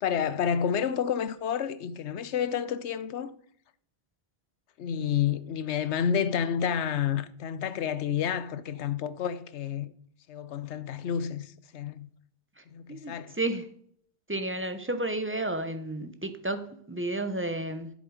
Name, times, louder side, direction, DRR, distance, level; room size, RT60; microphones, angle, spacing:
voice 1, 0.0-3.3 4.8-9.9 10.3-12.1 12.7-13.3, left 8 dB, 85° left, 1.0 m, -30 dB
voice 2, 12.9-13.7 14.3-17.9, right 2 dB, 15° right, 0.8 m, -32 dB
11.5 x 7.4 x 4.9 m
omnidirectional pair, 1.1 m